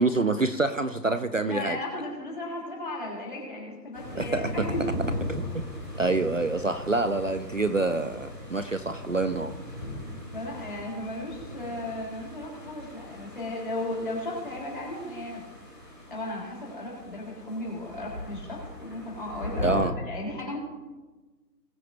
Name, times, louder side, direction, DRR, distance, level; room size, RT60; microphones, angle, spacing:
voice 1, 0.0-1.8 4.2-4.5 5.3-5.6 6.0-9.5 19.6-19.9, right 3 dB, 50° right, 11 dB, 0.6 m, -26 dB
voice 2, 1.4-5.1 10.0-15.4 16.1-20.6, left 1 dB, 30° left, -4 dB, 3.6 m, -35 dB
sound 1, 3.9-19.8, left 1 dB, 15° right, 2.3 m, -38 dB
21.0 x 8.8 x 3.0 m, 1.2 s
figure-of-eight pair, 180°, 50 cm